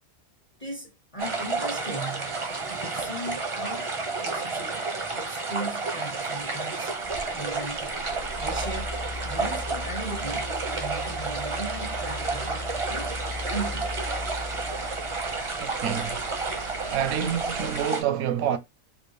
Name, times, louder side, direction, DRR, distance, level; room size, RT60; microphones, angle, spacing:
voice 1, 0.6-2.4 2.7-4.9 5.1-6.9 7.3-7.9 8.4-13.2 13.5-14.0, right 2 dB, 30° left, 0.6 m, -38 dB
sound 1, 1.2-18.0, right 3 dB, 40° right, 0.5 m, -31 dB
Mechanical fan, 6.8-17.8, left 2 dB, 80° left, 0.4 m, -39 dB
voice 2, 15.6-16.2 16.9-18.6, right 9 dB, 80° right, 1.0 m, -27 dB
3.5 x 2.4 x 3.1 m
omnidirectional pair, 1.5 m